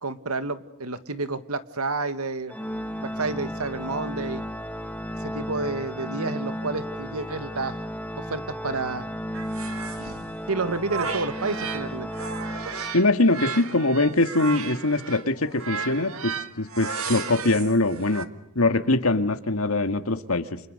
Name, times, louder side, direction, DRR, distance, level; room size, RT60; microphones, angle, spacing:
voice 1, 0.0-2.6 3.0-4.4 5.2-7.8 8.2-9.1 10.5-12.1, right 3 dB, 90° right, 11 dB, 1.8 m, -30 dB
Organ, 2.5-13.3, equal, 5° left, 1.3 m, -34 dB
sound 1, 9.3-11.9 12.1-18.3, right 5 dB, 70° right, 1.8 m, -34 dB
voice 2, 12.9-18.3 18.6-20.6, left 2 dB, 75° left, 8 dB, 2.0 m, -23 dB
29.5 x 29.0 x 6.7 m, 0.74 s
head